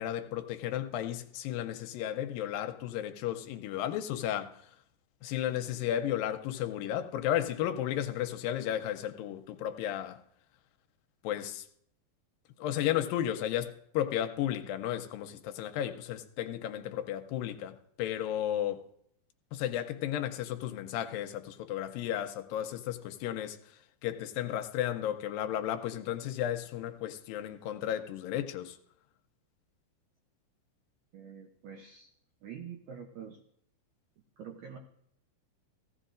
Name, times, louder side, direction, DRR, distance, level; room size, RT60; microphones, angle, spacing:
voice 1, 0.0-4.7 5.2-10.2 11.2-11.7 12.6-18.9 19.5-28.8, left 11 dB, 80° left, 2.4 m, -34 dB
voice 2, 31.1-32.1 32.4-33.4 34.4-34.8, right 7 dB, 70° right, 1.9 m, -45 dB
16.5 x 15.5 x 2.6 m
omnidirectional pair, 4.3 m